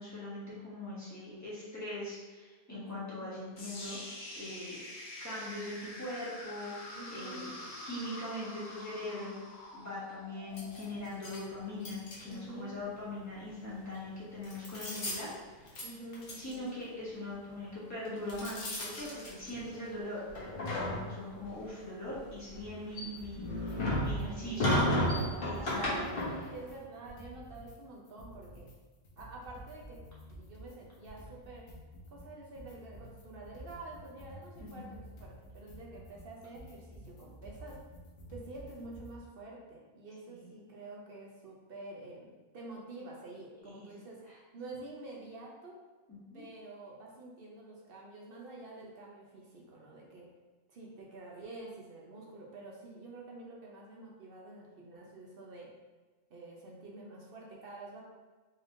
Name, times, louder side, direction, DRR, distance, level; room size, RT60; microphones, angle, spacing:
voice 1, 0.0-4.8 5.2-7.5 7.8-9.4 9.7-15.3 15.6-15.8 16.4-24.8 25.4-26.2 34.6-34.8 40.3-40.5 43.6-43.9 44.3-44.4 46.1-46.4, left 1 dB, 15° left, -9 dB, 1.4 m, -41 dB
voice 2, 2.7-3.3 6.9-7.6 12.2-12.8 15.8-16.8 24.1-28.7 29.2-30.0 30.3-31.7 32.1-37.8 38.3-44.2 44.5-45.8 46.3-50.3 50.7-55.7 56.3-58.0, right 2 dB, 65° right, -2 dB, 0.9 m, -48 dB
sound 1, 3.6-11.6, left 1 dB, 40° left, 0.7 m, -46 dB
sound 2, 10.6-11.4 11.8-12.6 13.8-14.0 14.4-15.3 15.7-15.9 16.1-16.5 18.0-19.9 20.3-21.4 22.1-26.6, left 1 dB, 60° left, 1.1 m, -34 dB
sound 3, 23.2-23.8 24.0-24.8 25.0-27.8 28.0-39.2, equal, 85° left, 1.1 m, -51 dB
4.1 x 3.3 x 2.6 m, 1.3 s
omnidirectional pair, 1.1 m